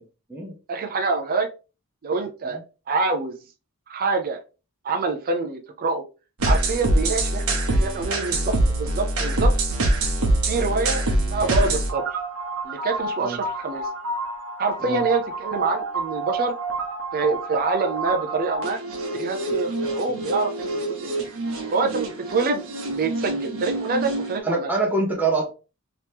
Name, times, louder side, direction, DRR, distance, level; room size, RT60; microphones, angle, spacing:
voice 1, 0.7-1.5 2.0-2.6 2.9-3.4 3.9-4.4 4.8-6.0 6.4-9.5 10.5-12.1 12.6-13.9 14.6-16.5 17.1-18.8 19.1-21.1 21.7-22.6 22.9-24.7, right 3 dB, 40° right, 5 dB, 0.4 m, -26 dB
sound 1, 6.4-24.4, right 2 dB, 65° right, 0.9 m, -26 dB
voice 2, 24.4-25.5, right 3 dB, 10° right, -1 dB, 0.8 m, -25 dB
3.0 x 2.9 x 3.3 m, 0.32 s
head